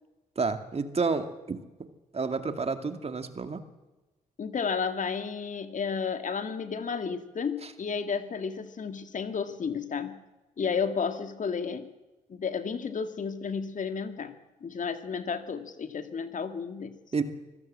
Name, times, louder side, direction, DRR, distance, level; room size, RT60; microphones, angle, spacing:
voice 1, 0.4-3.6 7.6-7.7 17.1-17.2, right 4 dB, 40° right, 8 dB, 2.3 m, -30 dB
voice 2, 4.4-10.2 10.6-11.9 12.3-14.4 14.6-17.0, left 6 dB, 50° left, 9 dB, 2.0 m, -32 dB
25.0 x 16.0 x 7.6 m, 1.1 s
supercardioid pair, 55°, 17 cm